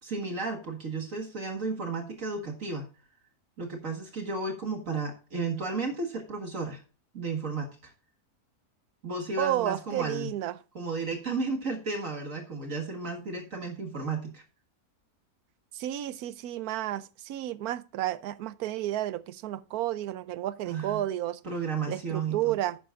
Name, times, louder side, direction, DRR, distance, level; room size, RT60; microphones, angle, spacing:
voice 1, 0.0-2.9 3.6-6.8 7.1-7.9 9.0-10.3 10.7-14.4 20.6-21.0 21.4-22.5, right 4 dB, 55° right, 2.0 m, -33 dB
voice 2, 9.4-10.6 15.7-21.4 21.9-22.8, right 13 dB, 75° right, 1.1 m, -31 dB
11.5 x 9.4 x 2.4 m
omnidirectional pair, 1.6 m